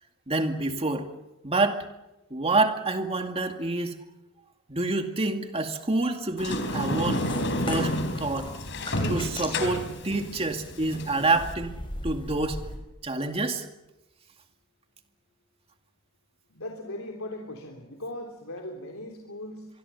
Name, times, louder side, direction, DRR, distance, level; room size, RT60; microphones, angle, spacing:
voice 1, 0.3-1.1 1.4-1.8 2.3-4.0 4.7-7.3 7.7-8.5 9.1-11.7 12.0-12.6 13.0-13.7, right 2 dB, 30° right, 5 dB, 2.2 m, -27 dB
Sliding door, 6.4-11.5, left 1 dB, 60° left, 4.1 m, -30 dB
sound 1, 6.4-12.8, left 1 dB, 25° left, 5.6 m, -40 dB
voice 2, 16.5-19.7, left 1 dB, 85° left, 1 dB, 3.4 m, -38 dB
25.5 x 23.0 x 7.1 m, 0.95 s
head